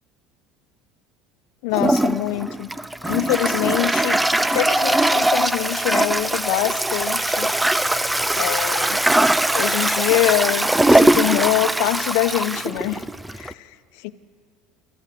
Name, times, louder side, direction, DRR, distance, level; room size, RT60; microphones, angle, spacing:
voice 1, 1.6-2.7 3.0-7.5 8.3-9.0 9.5-13.0 13.3-14.1, left 16 dB, 80° left, 13 dB, 0.9 m, -24 dB
Toilet flush, 1.7-13.5, right 1 dB, 5° right, 0.5 m, -20 dB
sound 1, 4.1-5.5 5.8-6.0 6.3-6.4 6.7-6.8 7.2-7.3 7.8-7.9 8.7-8.8 9.5-9.6 10.3-10.4, right 10 dB, 65° right, 1.7 m, -40 dB
27.0 x 14.0 x 8.5 m, 2.2 s
cardioid pair, 145°, 0 cm